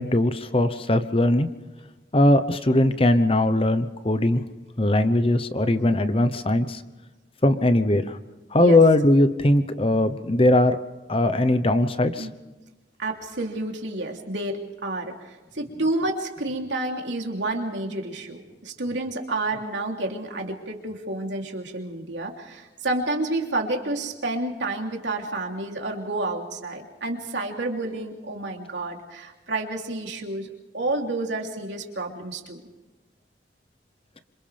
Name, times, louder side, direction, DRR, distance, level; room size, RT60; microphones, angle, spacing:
voice 1, 0.0-1.5 2.1-4.4 4.8-6.8 7.4-8.0 8.5-10.8 11.1-12.3, left 1 dB, 30° left, 10 dB, 1.0 m, -20 dB
voice 2, 8.6-8.9 12.2-12.3 13.0-32.6, right 2 dB, 80° right, 1 dB, 3.3 m, -30 dB
28.0 x 26.5 x 3.5 m, 1.2 s
head